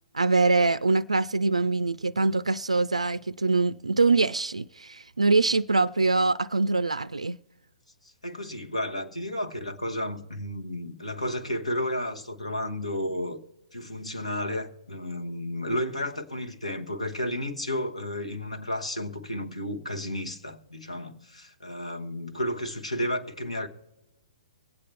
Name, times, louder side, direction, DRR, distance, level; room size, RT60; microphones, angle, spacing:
voice 1, 0.1-7.4, right 3 dB, 80° right, 0.3 m, -24 dB
voice 2, 8.0-13.4 13.7-23.7, left 1 dB, 80° left, 1.5 m, -32 dB
23.0 x 8.8 x 3.4 m
figure-of-eight pair, 120°, 3 cm